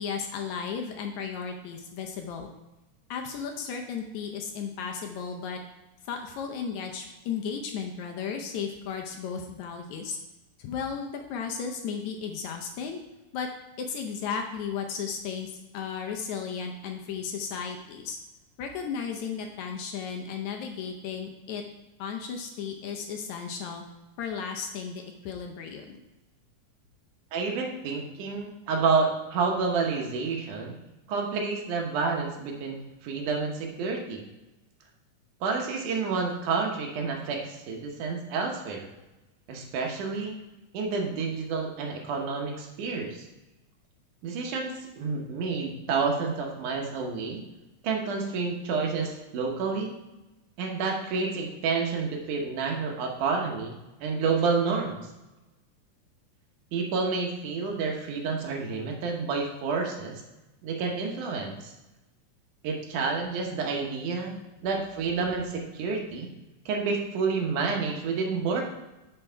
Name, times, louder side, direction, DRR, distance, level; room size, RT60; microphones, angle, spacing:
voice 1, 0.0-2.5 3.1-5.6 6.1-10.2 10.6-13.0 13.3-13.5 13.8-18.2 18.6-21.6 22.0-23.8 24.2-26.0, left 6 dB, 75° left, 3 dB, 1.9 m, -34 dB
voice 2, 27.3-30.7 31.1-34.2 35.4-38.9 39.5-40.3 40.7-43.3 44.2-47.4 47.8-49.9 50.6-53.7 54.0-55.0 56.7-60.2 60.6-61.7 62.6-64.3 64.6-66.3 66.7-68.6, right 4 dB, 75° right, 1 dB, 2.5 m, -29 dB
9.0 x 4.4 x 4.5 m, 1.0 s
omnidirectional pair, 3.7 m